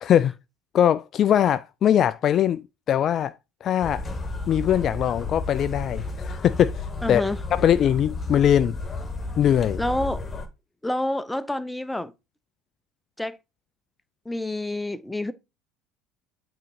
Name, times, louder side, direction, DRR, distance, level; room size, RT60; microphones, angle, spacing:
voice 1, 0.0-0.3 0.7-2.6 2.9-3.3 3.6-4.0 4.5-7.2 7.5-8.8 9.4-9.8, left 10 dB, 40° left, 0.3 m, -21 dB
sound 1, 3.8-10.5, left 3 dB, 25° left, 1.4 m, -32 dB
voice 2, 7.0-7.4 9.8-10.2 10.8-12.1 13.2-13.4 14.3-15.3, left 1 dB, 5° left, 0.7 m, -28 dB
8.3 x 3.8 x 4.8 m
figure-of-eight pair, 65°, 0 cm